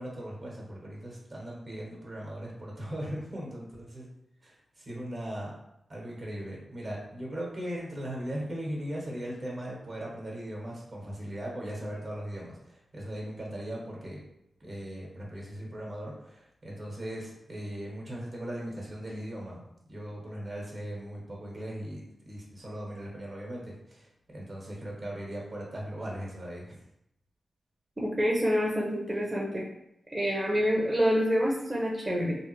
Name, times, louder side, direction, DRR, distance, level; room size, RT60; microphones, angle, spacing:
voice 1, 0.0-4.1 4.4-5.5 5.9-14.2 14.6-19.6 19.9-26.8, equal, 55° right, -3 dB, 1.2 m, -38 dB
voice 2, 28.0-29.7 30.1-32.4, equal, 25° right, -4 dB, 0.7 m, -27 dB
3.4 x 2.1 x 3.0 m, 0.80 s
cardioid pair, 45°, 0 cm